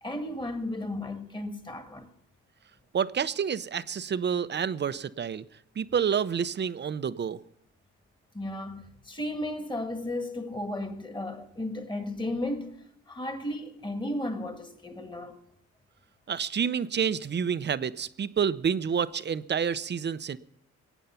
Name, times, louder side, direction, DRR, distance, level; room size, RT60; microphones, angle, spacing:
voice 1, 0.0-2.1 8.3-15.4, left 1 dB, 15° left, 1.8 m, -34 dB
voice 2, 2.9-5.4 5.8-7.4 16.3-20.4, right 7 dB, 35° right, 0.7 m, -28 dB
22.0 x 9.1 x 5.8 m
cardioid pair, 90°, 30 cm